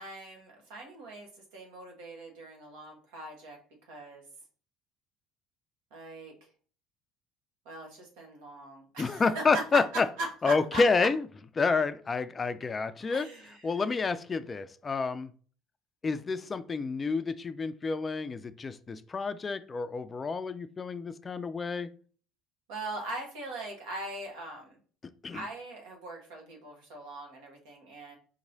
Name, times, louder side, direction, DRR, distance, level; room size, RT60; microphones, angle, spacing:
voice 1, 0.0-4.2 5.9-6.3 7.6-10.8 13.0-13.8 22.7-24.8 25.3-28.2, right 2 dB, 80° right, 2 dB, 1.2 m, -40 dB
voice 2, 9.0-10.1 10.4-11.2 11.6-13.3 13.6-15.3 16.0-21.9 25.2-25.4, left 4 dB, 30° left, 13 dB, 0.3 m, -29 dB
4.3 x 3.0 x 2.7 m, 0.43 s
hypercardioid pair, 80°, 0 cm